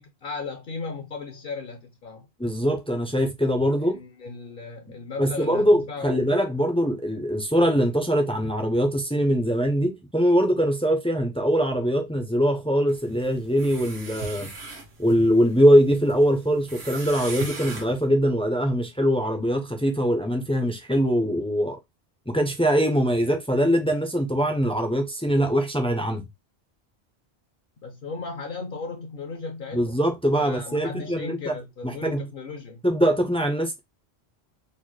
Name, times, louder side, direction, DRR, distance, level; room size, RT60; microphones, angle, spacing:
voice 1, 0.0-2.3 3.8-6.3 27.8-30.0 30.3-32.8, left 4 dB, 65° left, 0.8 m, -36 dB
voice 2, 2.4-4.0 5.2-14.5 15.0-21.8 22.3-26.2 29.7-31.5 31.8-32.3 32.8-33.8, equal, 10° left, 0.3 m, -22 dB
sound 1, 12.9-18.0, right 3 dB, 80° right, 1.4 m, -39 dB
4.0 x 2.1 x 3.1 m
omnidirectional pair, 1.1 m